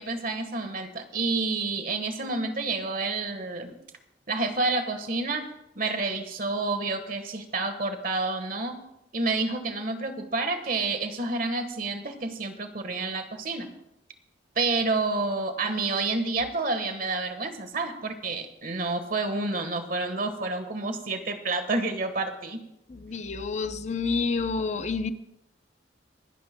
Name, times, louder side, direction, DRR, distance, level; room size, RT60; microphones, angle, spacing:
voice 1, 0.0-3.7 4.3-5.4 5.7-8.8 9.1-13.7 14.5-22.6, right 3 dB, 50° right, 1.4 m, -29 dB
voice 2, 22.9-25.1, left 4 dB, 40° left, 0.6 m, -29 dB
27.0 x 11.5 x 2.2 m
head